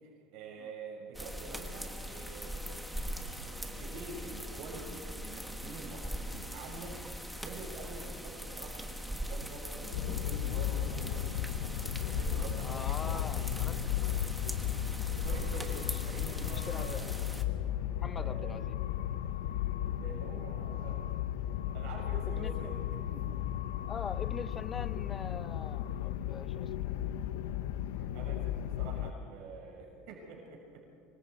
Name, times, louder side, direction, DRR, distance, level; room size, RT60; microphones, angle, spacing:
voice 1, 0.0-11.3 12.0-13.6 15.2-17.3 18.1-18.6 20.0-21.0 21.7-23.3 27.9-30.8, right 3 dB, 55° right, -2 dB, 6.0 m, -47 dB
sound 1, 1.1-17.4, equal, ahead, 1.3 m, -41 dB
sound 2, 9.9-29.1, left 11 dB, 90° left, 0.7 m, -35 dB
voice 2, 12.6-13.8 15.5-16.0 16.5-17.2 17.9-18.8 22.3-22.5 23.8-26.9, left 5 dB, 15° left, 17 dB, 0.4 m, -43 dB
25.0 x 25.0 x 4.7 m, 2.8 s
cardioid pair, 160°, 0 cm